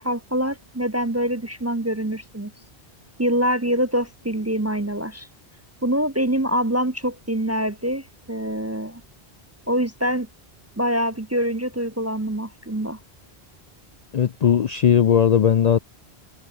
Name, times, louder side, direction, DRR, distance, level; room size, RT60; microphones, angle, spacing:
voice 1, 0.0-2.5 3.2-5.3 5.8-9.0 9.7-10.3 10.8-13.0, equal, 15° right, 0.6 m, -25 dB
voice 2, 14.1-15.8, left 8 dB, 50° left, 0.5 m, -18 dB
omnidirectional pair, 1.1 m